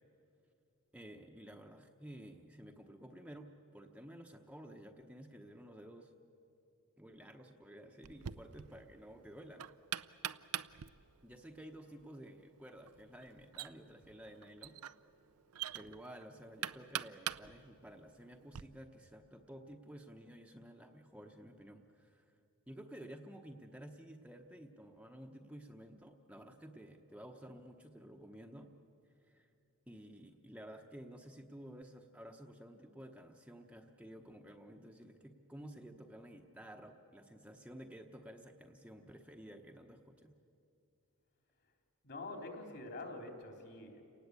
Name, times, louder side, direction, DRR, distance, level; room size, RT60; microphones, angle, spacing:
voice 1, 0.9-6.1 7.0-9.7 11.2-14.8 15.7-22.3 22.7-28.7 29.2-29.5 29.9-40.4, right 1 dB, 5° right, 3 dB, 1.0 m, -53 dB
Knock, 8.0-18.6, right 10 dB, 80° right, 0.6 m, -46 dB
voice 2, 42.0-44.0, left 2 dB, 50° left, 4 dB, 3.6 m, -46 dB
30.0 x 19.0 x 8.4 m, 2.7 s
head